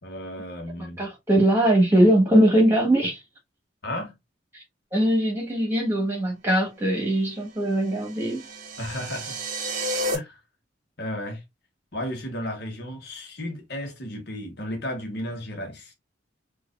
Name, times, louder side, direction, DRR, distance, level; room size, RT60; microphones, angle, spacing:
voice 1, 0.0-1.0 3.8-4.2 8.8-9.4 10.1-10.4 11.0-11.4 11.9-15.9, left 1 dB, 60° left, 1.2 m, -34 dB
voice 2, 0.8-3.2 4.5-4.6 4.9-8.4, right 1 dB, 15° right, 1.3 m, -21 dB
sound 1, 7.6-10.1, right 1 dB, 45° right, 0.8 m, -31 dB
4.7 x 2.5 x 2.4 m
head